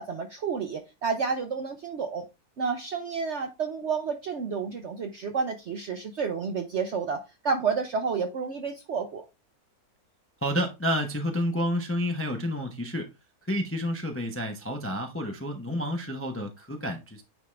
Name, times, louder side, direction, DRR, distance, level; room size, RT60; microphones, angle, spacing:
voice 1, 0.0-2.3 2.6-9.2, right 5 dB, 55° right, 0.9 m, -30 dB
voice 2, 10.4-13.1 13.5-17.2, equal, 15° left, 0.6 m, -30 dB
9.3 x 3.6 x 3.2 m
omnidirectional pair, 1.7 m